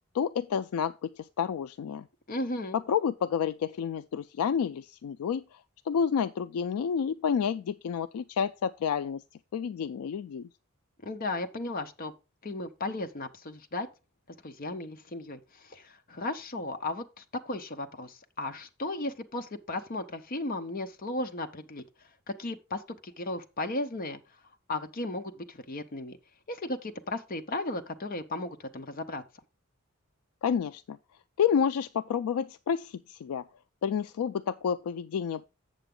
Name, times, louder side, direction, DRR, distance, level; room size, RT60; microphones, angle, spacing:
voice 1, 0.1-2.1 2.7-5.6 5.9-9.2 9.5-10.5 30.4-31.0 31.4-33.4 33.8-35.5, left 7 dB, 90° left, 0.3 m, -29 dB
voice 2, 2.3-2.8 11.0-12.1 12.4-13.9 14.4-21.8 22.3-24.2 24.7-26.2 26.5-29.2, left 2 dB, 40° left, 0.7 m, -35 dB
8.0 x 6.8 x 3.7 m
head